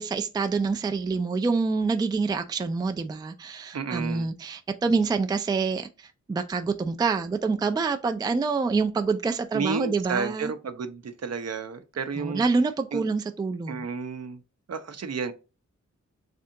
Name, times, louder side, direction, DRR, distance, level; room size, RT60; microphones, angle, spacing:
voice 1, 0.0-10.5 12.2-13.9, right 4 dB, 15° right, 0.3 m, -26 dB
voice 2, 3.7-4.3 9.5-12.4 12.9-13.1 13.7-14.4 14.7-15.3, right 5 dB, 60° right, 0.6 m, -32 dB
3.4 x 2.7 x 3.7 m
wide cardioid pair, 95°, 29 cm